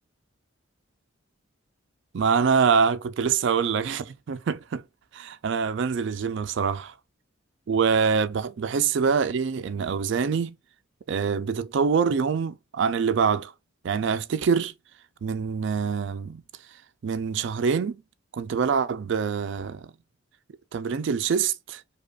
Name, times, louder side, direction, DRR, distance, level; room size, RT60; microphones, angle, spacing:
voice 1, 2.1-4.8 5.1-6.9 7.7-10.6 11.1-13.5 13.8-14.7 15.2-16.4 17.0-18.0 18.3-19.9 20.7-21.8, right 6 dB, 60° right, 0.4 m, -25 dB
4.9 x 2.3 x 2.3 m
head